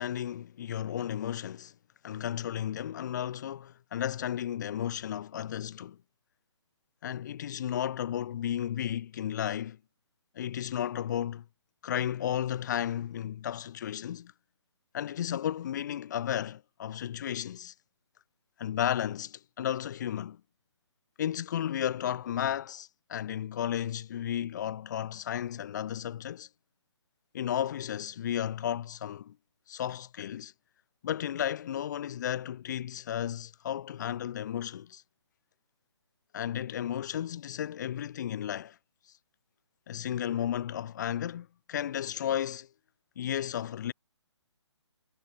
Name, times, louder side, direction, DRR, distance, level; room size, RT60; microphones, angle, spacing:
voice 1, 0.0-1.7 2.0-6.0 7.0-9.8 10.4-11.4 11.8-14.3 14.9-17.7 18.6-20.4 21.2-26.5 27.3-29.3 29.7-30.5 31.0-35.0 36.3-38.8 39.9-42.7 43.2-43.9, left 10 dB, 40° left, 0.4 m, -33 dB
figure-of-eight pair, 140°, 15 cm